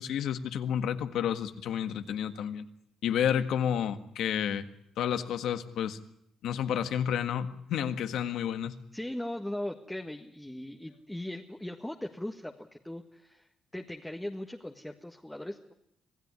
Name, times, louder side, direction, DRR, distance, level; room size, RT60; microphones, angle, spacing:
voice 1, 0.0-2.6 3.0-4.7 5.0-6.0 6.4-8.8, left 9 dB, 80° left, 9 dB, 1.7 m, -30 dB
voice 2, 8.9-15.7, left 1 dB, 5° left, 3 dB, 1.7 m, -39 dB
27.0 x 16.5 x 9.8 m, 0.77 s
cardioid pair, 90°, 0 cm